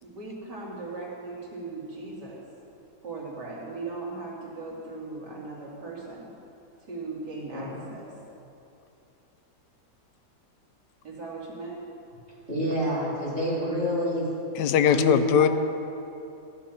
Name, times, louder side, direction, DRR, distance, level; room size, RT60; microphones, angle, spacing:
voice 1, 0.0-2.4 3.0-6.3 6.9-8.0 11.0-11.8, right 3 dB, 80° right, -5 dB, 3.1 m, -38 dB
voice 2, 7.5-7.9 12.5-14.3 14.9-15.5, equal, 35° right, -8 dB, 4.2 m, -28 dB
voice 3, 14.5-15.5, left 8 dB, 85° left, 10 dB, 1.2 m, -20 dB
14.5 x 10.0 x 5.7 m, 2.8 s
omnidirectional pair, 1.8 m